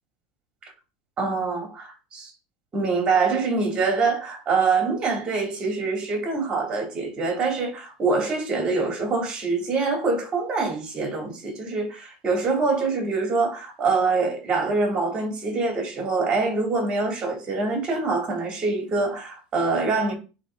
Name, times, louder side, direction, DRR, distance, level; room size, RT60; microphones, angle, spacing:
voice 1, 1.2-2.3 2.7-20.1, right 4 dB, 30° right, 2.9 m, -25 dB
9.5 x 3.7 x 3.8 m
supercardioid pair, 140°, 3 cm